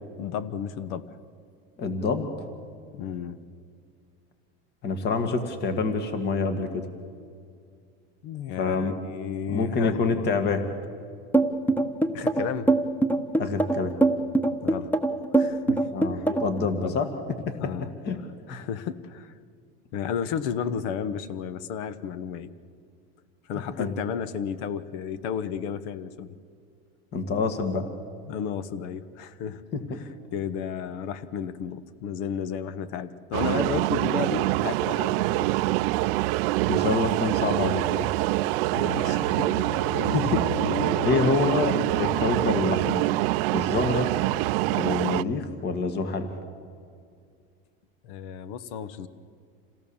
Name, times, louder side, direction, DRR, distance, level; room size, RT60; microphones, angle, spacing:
voice 1, 0.2-1.2 2.9-3.4 8.2-10.0 12.1-12.7 14.6-14.9 15.3-16.2 16.7-17.0 17.6-17.9 18.5-19.3 19.9-22.5 23.4-26.3 28.3-29.6 29.9-35.5 38.8-40.1 41.0-41.1 48.0-49.1, left 7 dB, 65° left, 14 dB, 1.2 m, -33 dB
voice 2, 1.8-2.3 4.8-6.9 8.6-8.9 9.5-10.6 13.4-13.9 15.9-17.1 17.5-17.6 18.1-18.2 23.8-23.9 27.1-27.9 29.7-30.0 36.7-38.1 40.1-40.4 41.0-43.2 43.5-44.1 44.7-46.3, left 4 dB, 35° left, 7 dB, 1.9 m, -26 dB
sound 1, 11.3-16.6, right 2 dB, 5° left, 1.2 m, -22 dB
sound 2, 33.3-45.2, right 18 dB, 70° right, 0.6 m, -25 dB
sound 3, 38.7-44.0, left 8 dB, 85° left, 0.9 m, -36 dB
28.0 x 17.0 x 7.2 m, 2.3 s
supercardioid pair, 135°, 30 cm